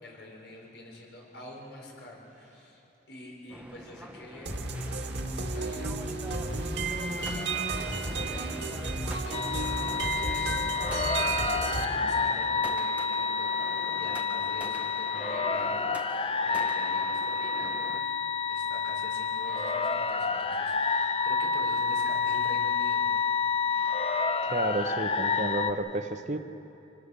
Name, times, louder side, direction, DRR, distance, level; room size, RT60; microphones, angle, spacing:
voice 1, 0.0-2.8 3.1-4.5 5.5-16.1 16.4-18.2 18.5-23.5, left 1 dB, 70° left, -1 dB, 5.5 m, -47 dB
sound 1, 3.5-18.0, right 1 dB, 5° right, 0.8 m, -46 dB
sound 2, 4.5-11.8, right 3 dB, 80° right, 2.1 m, -32 dB
sound 3, 9.3-25.7, left 5 dB, 30° left, 0.7 m, -29 dB
voice 2, 24.5-26.4, right 2 dB, 40° right, 7 dB, 0.9 m, -31 dB
27.5 x 18.5 x 6.8 m, 2.8 s
head